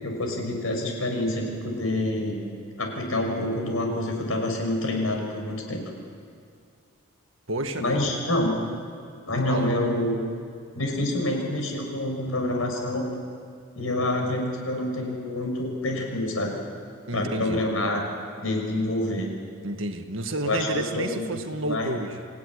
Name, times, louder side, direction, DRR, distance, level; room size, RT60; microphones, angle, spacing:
voice 1, 0.0-2.4 2.8-5.8 7.8-8.6 9.3-10.2 10.7-13.1 13.7-16.6 17.1-18.1 18.4-19.3 20.4-21.2 21.7-21.9, left 1 dB, 80° left, 2 dB, 6.1 m, -27 dB
voice 2, 7.5-8.1 9.5-9.8 17.1-17.6 19.6-22.3, right 2 dB, 65° right, 6 dB, 1.8 m, -30 dB
26.5 x 16.5 x 9.9 m, 2.3 s
head